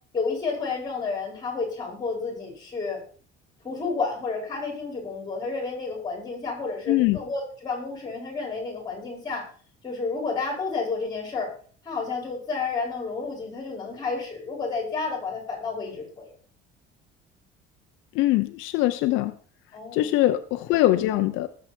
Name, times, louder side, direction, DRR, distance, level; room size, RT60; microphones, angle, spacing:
voice 1, 0.1-3.0 3.6-9.5 9.8-11.5 11.8-16.3 19.7-20.1, left 4 dB, 20° left, 1 dB, 5.4 m, -31 dB
voice 2, 6.9-7.2 18.1-19.3 19.9-21.5, left 15 dB, 75° left, 9 dB, 0.8 m, -22 dB
19.5 x 7.6 x 4.5 m, 0.44 s
cardioid pair, 160°, 20 cm